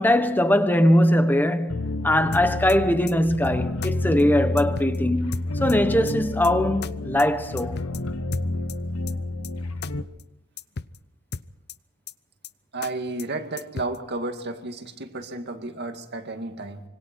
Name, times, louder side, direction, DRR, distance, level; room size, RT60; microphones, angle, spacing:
voice 1, 0.0-7.8, left 1 dB, 10° left, 1.3 m, -21 dB
sound 1, 1.7-10.0, left 2 dB, 75° left, 1.2 m, -29 dB
sound 2, 2.3-2.8 3.1-3.2 3.4-3.5 3.8-3.9 4.2-4.3 4.6-5.0 5.3-5.8 6.1-6.2 6.4-6.5 6.8-6.9 7.2-7.3 7.6-8.0 8.3-8.8 9.1-9.2 9.4-9.5 9.8-9.9 10.2-10.3 10.6-11.0 11.3-11.8 12.1-12.2 12.4-12.5 12.8-12.9 13.2-13.3 13.6-14.0, left 5 dB, 50° left, 0.7 m, -35 dB
voice 2, 12.7-16.8, right 2 dB, 50° right, 2.2 m, -32 dB
26.0 x 24.0 x 4.7 m
head